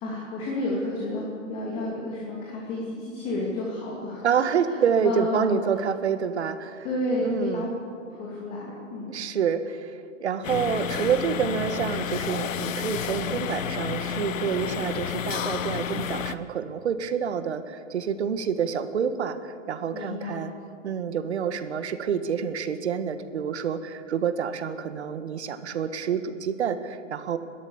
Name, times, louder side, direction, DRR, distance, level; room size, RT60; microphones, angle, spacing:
voice 1, 0.0-4.8 5.0-5.6 6.8-7.7 8.1-9.2 19.9-20.5, left 2 dB, 15° left, -4 dB, 2.6 m, -31 dB
voice 2, 4.2-6.8 7.2-7.7 9.1-20.5 20.8-27.4, right 7 dB, 60° right, 10 dB, 1.6 m, -28 dB
sound 1, 10.4-16.3, left 7 dB, 85° left, 1.1 m, -30 dB
29.5 x 12.5 x 7.2 m, 2.3 s
hypercardioid pair, 170°, 39 cm